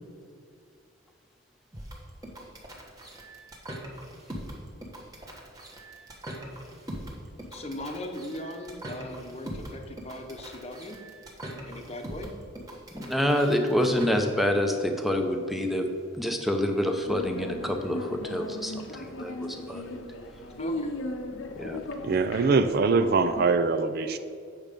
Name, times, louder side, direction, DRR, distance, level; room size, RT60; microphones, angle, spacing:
sound 1, 1.7-14.1, right 1 dB, 20° right, 1.2 m, -41 dB
voice 1, 7.5-11.0 11.5-12.3 20.6-20.9 21.6-21.7, left 1 dB, 30° left, 0.8 m, -39 dB
voice 2, 12.9-15.9 16.1-19.8 21.5-21.8, equal, ahead, 0.7 m, -27 dB
sound 2, 17.0-23.5, left 2 dB, 80° left, 0.8 m, -37 dB
voice 3, 22.0-24.2, right 4 dB, 50° right, 0.4 m, -23 dB
8.7 x 6.1 x 5.1 m
head